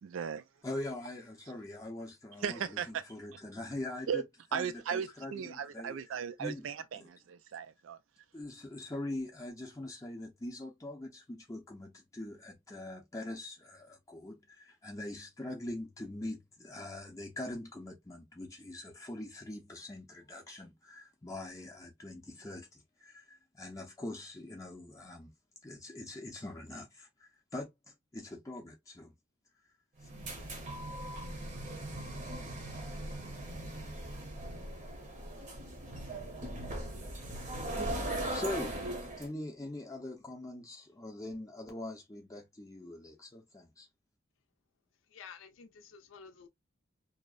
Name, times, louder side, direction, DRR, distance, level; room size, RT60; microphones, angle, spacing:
voice 1, 0.0-0.4 2.4-3.0 4.1-4.2 4.5-8.0, right 7 dB, 80° right, 0.4 m, -36 dB
voice 2, 0.6-4.3 4.5-6.0 6.4-6.7 8.3-25.3 25.6-29.1 38.3-43.9, left 1 dB, 15° left, 0.5 m, -43 dB
sound 1, 30.0-39.3, right 1 dB, 40° right, 0.7 m, -39 dB
voice 3, 45.1-46.5, left 6 dB, 80° left, 0.5 m, -51 dB
2.7 x 2.0 x 2.3 m
head